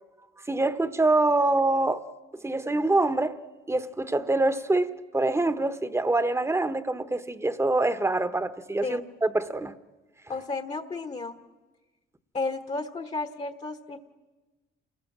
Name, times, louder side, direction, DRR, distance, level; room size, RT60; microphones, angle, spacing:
voice 1, 0.5-2.0 2.4-3.4 3.7-9.7, right 2 dB, 15° right, 1.1 m, -25 dB
voice 2, 10.3-11.4 12.3-14.0, left 3 dB, 35° left, 1.3 m, -33 dB
28.5 x 19.5 x 7.4 m
cardioid pair, 90°, 20 cm